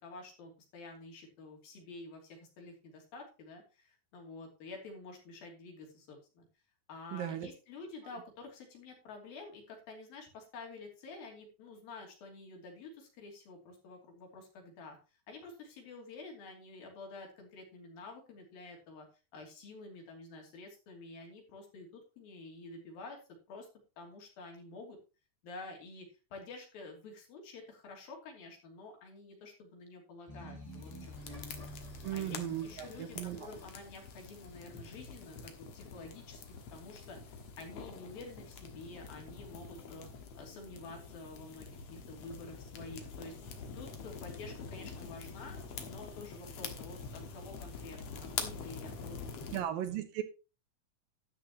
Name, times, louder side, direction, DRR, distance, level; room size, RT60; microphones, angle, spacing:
voice 1, 0.0-6.5 6.9-15.0 15.3-19.1 19.3-23.2 23.5-23.7 24.0-25.0 25.4-31.5 32.1-36.4 36.7-40.1 40.4-43.3 43.8-45.6 45.9-49.6 49.9-50.0, left 3 dB, 80° left, 1 dB, 4.6 m, -49 dB
voice 2, 7.1-7.5 32.0-33.5 49.5-50.2, right 11 dB, 75° right, 8 dB, 2.9 m, -37 dB
sound 1, 30.3-34.6, equal, 5° left, 4.4 m, -49 dB
sound 2, 30.7-49.6, left 5 dB, 55° left, 2.1 m, -46 dB
12.0 x 10.0 x 3.0 m, 0.31 s
omnidirectional pair, 4.1 m